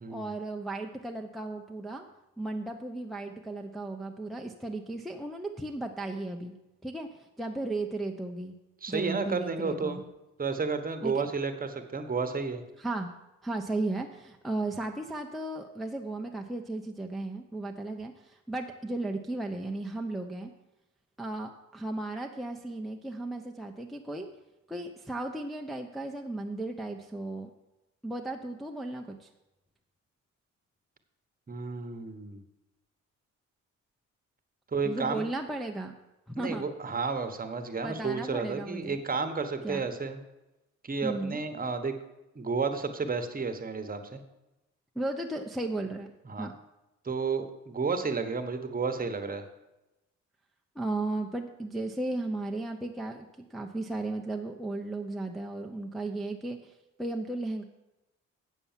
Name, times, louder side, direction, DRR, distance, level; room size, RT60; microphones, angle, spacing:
voice 1, 0.1-2.0 2.4-6.5 6.8-8.6 8.9-10.1 11.0-11.3 12.8-13.1 13.4-20.5 21.2-24.3 24.7-27.5 28.0-29.3 34.8-35.9 36.4-36.6 37.8-39.0 39.6-39.9 41.0-41.4 45.0-46.1 46.4-46.5 50.8-56.7 57.0-57.6, right 2 dB, ahead, 2 dB, 0.7 m, -35 dB
voice 2, 8.8-10.0 10.4-12.6 31.5-32.4 34.7-35.3 36.3-40.2 40.8-42.0 42.3-44.2 46.2-46.5 47.0-49.4, right 4 dB, 30° right, 7 dB, 1.2 m, -32 dB
8.2 x 7.0 x 7.3 m, 0.97 s
cardioid pair, 90°, 30 cm